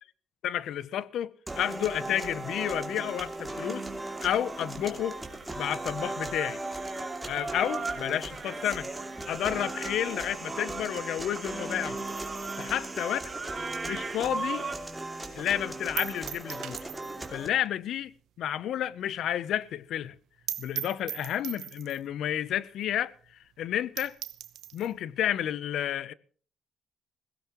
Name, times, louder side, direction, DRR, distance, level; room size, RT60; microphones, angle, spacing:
voice 1, 0.4-3.8 4.2-5.2 5.6-6.6 7.3-8.9 9.3-12.0 12.6-13.2 13.8-14.6 15.3-16.8 17.3-18.1 18.4-20.1 20.6-23.1 23.6-24.2 24.7-26.1, left 11 dB, 75° left, 0.7 m, -31 dB
sound 1, 1.5-17.5, right 2 dB, 10° right, 2.7 m, -38 dB
sound 2, 3.6-14.8, right 4 dB, 35° right, 1.8 m, -40 dB
sound 3, 12.0-14.6 14.9-15.0 15.4-15.5 16.0-17.4 17.6-17.7 18.0-18.1 18.5-18.6 18.9-19.0 19.2-19.3 19.7-19.8 20.1-20.2 20.5-22.1 22.8-22.9 23.2-23.3 23.7-23.8 24.0-24.9, right 12 dB, 80° right, 0.9 m, -39 dB
21.5 x 16.5 x 3.0 m
cardioid pair, 90°, 0 cm